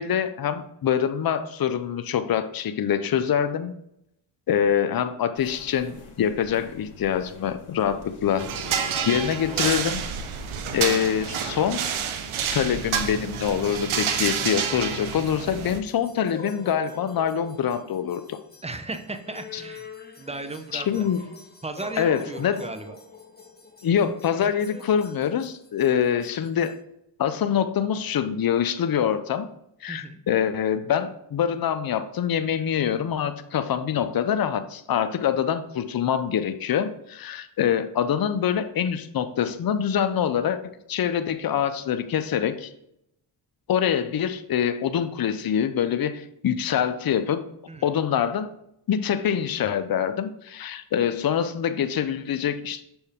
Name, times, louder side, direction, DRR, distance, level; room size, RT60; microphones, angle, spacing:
voice 1, 0.0-3.7 4.5-8.5 9.0-10.0 10.7-11.8 12.5-18.4 19.5-19.6 20.7-21.2 22.0-22.6 23.8-26.8 27.2-29.5 29.8-40.6 40.9-42.7 43.7-47.4 47.8-48.5 48.9-52.8, left 8 dB, 45° left, 10 dB, 0.7 m, -25 dB
sound 1, 5.4-10.9, left 4 dB, 70° left, 1.4 m, -45 dB
sound 2, 8.4-15.8, right 7 dB, 70° right, 0.8 m, -28 dB
sound 3, 14.9-26.8, left 3 dB, 20° left, 1.1 m, -45 dB
voice 2, 18.6-19.9 20.2-21.0 21.6-23.0 24.7-24.8 29.9-30.2 47.7-47.9, right 2 dB, 15° right, 7 dB, 0.8 m, -36 dB
6.5 x 4.4 x 3.6 m, 0.76 s
supercardioid pair, 50°, 50 cm